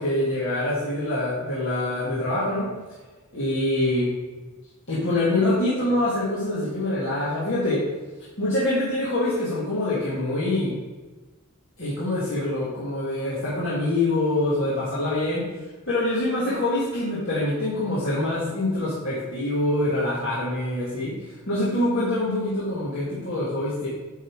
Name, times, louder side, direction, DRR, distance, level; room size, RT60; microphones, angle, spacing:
voice 1, 0.0-2.7 3.3-4.1 4.9-7.9 8.4-10.8 11.8-15.5 15.9-23.9, left 1 dB, 60° left, -8 dB, 1.8 m, -25 dB
9.0 x 3.6 x 4.6 m, 1.2 s
head